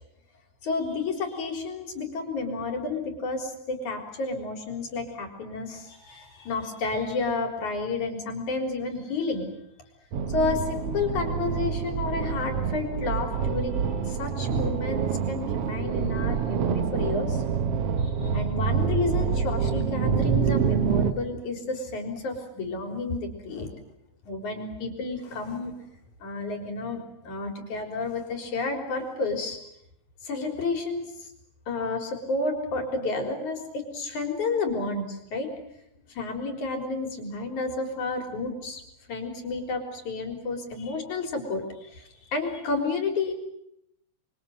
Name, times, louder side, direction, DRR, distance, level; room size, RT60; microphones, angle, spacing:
voice 1, 0.6-9.5 10.3-17.4 18.0-23.7 24.3-25.8 26.2-29.6 30.2-31.3 31.7-35.5 36.1-38.8 39.1-43.3, left 3 dB, 90° left, 4 dB, 5.3 m, -31 dB
sound 1, 10.1-21.1, right 7 dB, 60° right, 2.1 m, -27 dB
28.0 x 23.5 x 7.8 m, 0.79 s
omnidirectional pair, 3.3 m